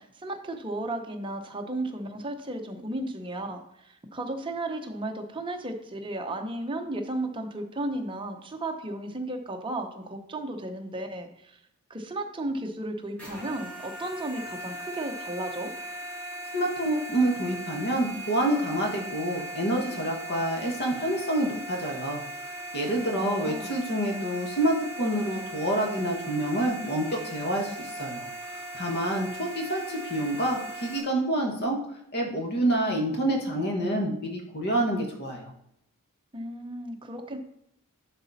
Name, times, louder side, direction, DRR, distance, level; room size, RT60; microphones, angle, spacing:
voice 1, 0.0-11.6 11.9-15.7 23.1-23.7 36.3-37.4, right 1 dB, 20° right, 4 dB, 0.8 m, -34 dB
sound 1, 13.2-31.0, right 1 dB, 5° left, 2.6 m, -39 dB
voice 2, 16.5-22.2 22.7-28.2 28.5-31.8 32.1-35.5, right 1 dB, 45° left, 1 dB, 1.4 m, -27 dB
11.0 x 4.1 x 4.1 m, 0.77 s
head